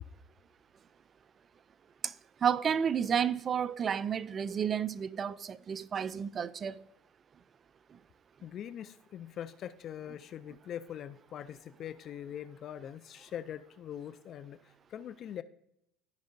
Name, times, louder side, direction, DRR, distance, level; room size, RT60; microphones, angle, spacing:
voice 1, 2.4-6.8, right 8 dB, 30° right, 0.3 m, -31 dB
voice 2, 8.4-15.4, left 10 dB, 45° left, 0.4 m, -43 dB
13.5 x 5.3 x 2.6 m
supercardioid pair, 110°, 0 cm